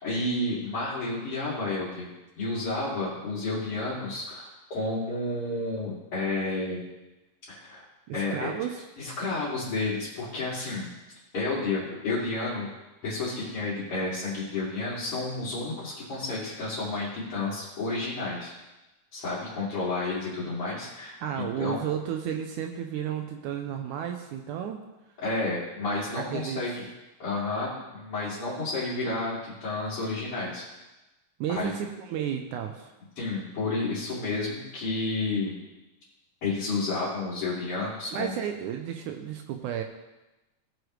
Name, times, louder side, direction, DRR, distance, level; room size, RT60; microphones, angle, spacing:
voice 1, 0.0-2.1 2.4-6.9 7.5-7.8 8.1-8.5 9.0-10.9 11.3-12.7 13.0-18.5 19.1-21.8 25.2-26.8 27.2-30.6 31.5-31.7 33.2-35.6 36.4-38.3, left 2 dB, 45° left, -11 dB, 3.3 m, -31 dB
voice 2, 8.1-8.8 21.2-24.8 26.1-26.7 31.4-32.9 38.1-39.8, right 9 dB, 80° right, 4 dB, 2.0 m, -32 dB
17.5 x 6.5 x 3.1 m, 1.0 s
omnidirectional pair, 3.7 m